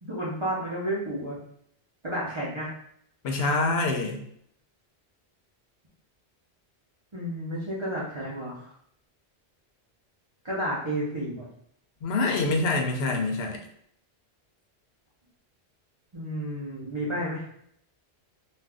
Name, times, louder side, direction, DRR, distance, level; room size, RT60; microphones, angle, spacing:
voice 1, 0.0-1.4 2.0-2.7 7.1-8.7 10.4-11.5 16.1-17.5, right 1 dB, 30° right, -7 dB, 0.7 m, -31 dB
voice 2, 3.2-4.2 12.0-13.6, left 3 dB, 70° left, 3 dB, 0.8 m, -25 dB
2.5 x 2.3 x 3.4 m, 0.69 s
omnidirectional pair, 1.1 m